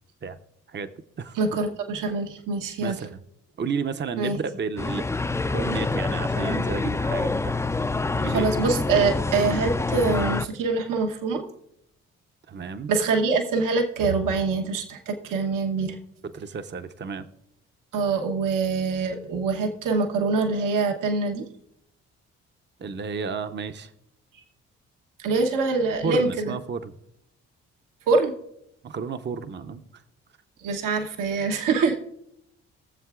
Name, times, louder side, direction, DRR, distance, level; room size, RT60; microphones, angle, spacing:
voice 1, 1.3-3.0 4.2-4.4 8.3-11.4 12.9-16.0 17.9-21.4 25.2-26.5 28.1-28.3 30.6-32.0, right 4 dB, 70° right, 3 dB, 1.1 m, -24 dB
voice 2, 2.8-3.2 3.6-5.0 5.5-7.6 8.1-8.5 12.5-12.9 16.3-17.3 22.8-23.9 26.0-27.0 28.8-29.8, right 5 dB, 30° right, 9 dB, 0.7 m, -32 dB
sound 1, 4.8-10.5, left 3 dB, 10° left, 0.4 m, -26 dB
21.0 x 7.3 x 2.4 m, 0.78 s
hypercardioid pair, 45°, 34 cm